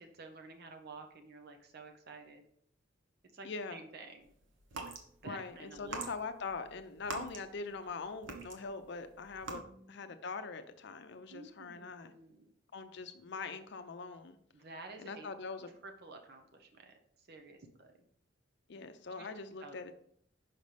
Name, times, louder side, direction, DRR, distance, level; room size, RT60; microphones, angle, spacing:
voice 1, 0.0-2.5 3.3-4.3 5.2-6.0 9.6-10.1 11.3-12.5 14.5-15.4 15.8-18.1 19.2-19.3 19.6-19.9, right 3 dB, 60° right, 5 dB, 0.8 m, -51 dB
voice 2, 3.4-3.8 5.2-9.6 9.9-12.1 12.7-14.4 15.0-15.8 18.7-19.9, left 4 dB, 65° left, 9 dB, 0.5 m, -42 dB
sound 1, 4.6-5.0 5.7-7.9 8.2-8.9 9.3-9.6, right 3 dB, 90° right, 1.0 m, -43 dB
5.8 x 5.3 x 3.3 m, 0.64 s
head